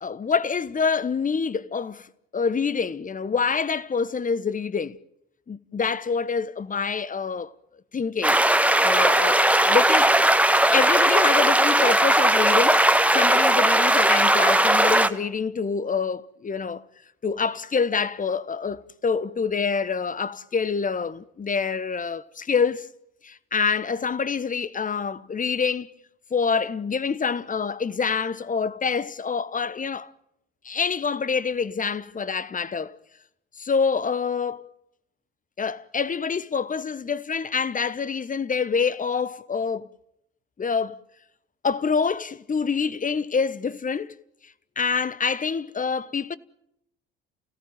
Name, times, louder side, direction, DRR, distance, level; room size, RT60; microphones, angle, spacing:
voice 1, 0.0-2.1 2.3-5.0 5.5-7.5 7.9-8.4 8.8-9.4 9.7-10.2 10.7-12.9 13.1-16.8 17.2-22.9 23.2-25.9 26.3-30.1 30.6-33.0 33.6-34.6 35.6-39.9 40.6-41.0 41.6-44.2 44.8-46.4, left 5 dB, 25° left, 1.1 m, -26 dB
sound 1, 8.2-15.1, right 1 dB, 5° right, 1.5 m, -18 dB
29.0 x 17.5 x 9.1 m
figure-of-eight pair, 50°, 31 cm